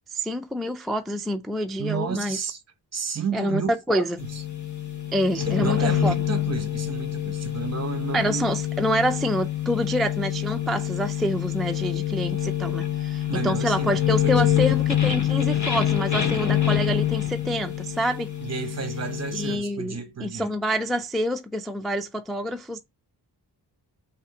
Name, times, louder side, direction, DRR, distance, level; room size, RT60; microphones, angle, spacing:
voice 1, 0.1-2.4 3.3-3.6 3.9-4.2 5.1-6.1 8.1-18.3 19.3-22.8, equal, ahead, 0.3 m, -27 dB
voice 2, 1.8-2.6 2.9-4.4 5.3-8.5 13.3-14.5 18.4-20.5, right 6 dB, 40° right, 0.8 m, -32 dB
sound 1, 4.2-19.6, left 11 dB, 45° left, 1.1 m, -26 dB
5.6 x 2.5 x 3.8 m
wide cardioid pair, 135°, 41 cm